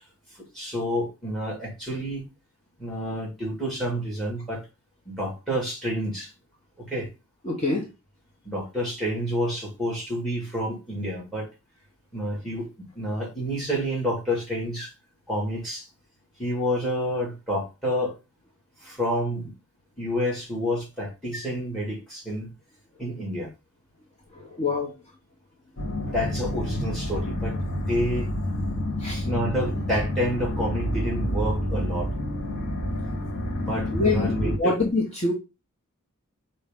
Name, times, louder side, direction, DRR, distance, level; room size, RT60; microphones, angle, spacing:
voice 1, 0.3-2.3 2.8-4.6 5.1-6.3 6.8-7.1 8.4-11.5 12.1-14.9 15.3-15.9 16.4-18.2 18.8-19.5 20.0-22.5 23.0-23.5 26.1-28.3 29.2-32.1 33.6-34.8, equal, ahead, 2.0 m, -29 dB
voice 2, 7.4-7.9 24.4-24.9 29.0-29.3 33.9-35.3, left 3 dB, 30° left, 1.0 m, -25 dB
sound 1, 25.8-34.6, left 1 dB, 85° left, 1.3 m, -28 dB
5.3 x 2.8 x 3.5 m
head